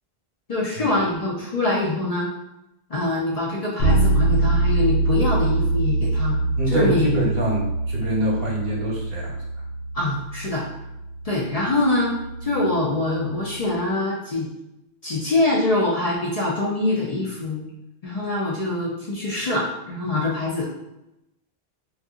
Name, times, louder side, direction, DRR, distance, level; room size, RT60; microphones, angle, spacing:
voice 1, 0.5-2.3 2.9-6.4 6.7-7.1 9.9-10.6 11.2-12.1 12.4-14.5 15.0-17.7 18.0-20.7, left 2 dB, 50° left, -5 dB, 0.5 m, -24 dB
Bass guitar, 3.8-13.6, right 2 dB, 90° left, 0.9 m, -24 dB
voice 2, 6.6-9.4, right 1 dB, 65° right, -2 dB, 1.0 m, -25 dB
2.6 x 2.3 x 3.6 m, 0.91 s
omnidirectional pair, 1.1 m